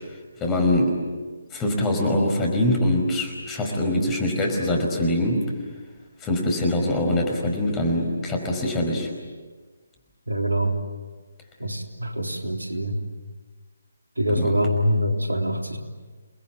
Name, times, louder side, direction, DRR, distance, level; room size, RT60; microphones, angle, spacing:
voice 1, 0.4-1.0 1.5-5.5 6.2-9.1 14.4-14.6, left 1 dB, 15° left, 2 dB, 5.0 m, -23 dB
voice 2, 10.3-10.8 11.6-13.0 14.2-15.8, equal, 80° right, 3 dB, 3.6 m, -24 dB
29.5 x 21.0 x 9.3 m, 1.4 s
figure-of-eight pair, 145°, 0 cm